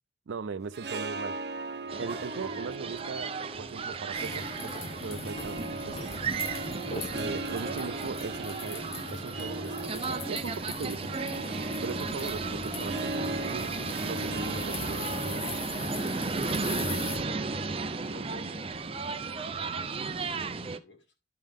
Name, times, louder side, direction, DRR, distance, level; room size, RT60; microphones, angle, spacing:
voice 1, 0.3-1.4 2.0-6.2 6.9-11.2 11.8-13.7 14.0-15.5, right 5 dB, 85° right, 0.4 m, -39 dB
Harp, 0.6-20.0, right 2 dB, 60° right, 0.8 m, -40 dB
sound 1, 1.9-20.8, right 4 dB, 30° right, 0.5 m, -35 dB
sound 2, 4.2-17.2, left 3 dB, 35° left, 1.1 m, -40 dB
voice 2, 15.9-16.6 16.8-19.8 20.1-21.1, left 3 dB, 75° left, 2.2 m, -51 dB
11.0 x 5.4 x 3.5 m
head